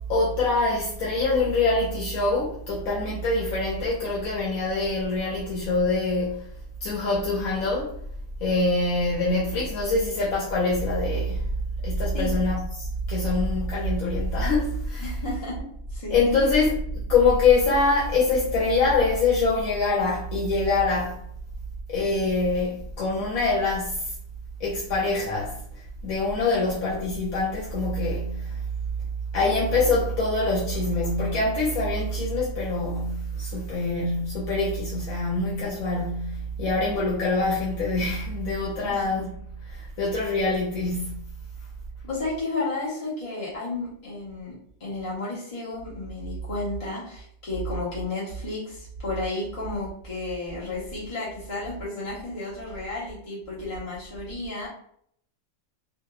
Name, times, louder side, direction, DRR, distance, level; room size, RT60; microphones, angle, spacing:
voice 1, 0.1-6.5 6.8-7.9 8.4-11.5 11.8-15.2 16.1-21.2 21.9-24.1 24.6-25.6 26.0-28.6 29.3-41.2, left 3 dB, 80° left, 1.0 m, -24 dB
voice 2, 15.0-15.6 15.9-16.5 38.8-39.0 42.0-54.7, left 2 dB, 30° left, 0.7 m, -33 dB
2.8 x 2.2 x 2.2 m
omnidirectional pair, 1.5 m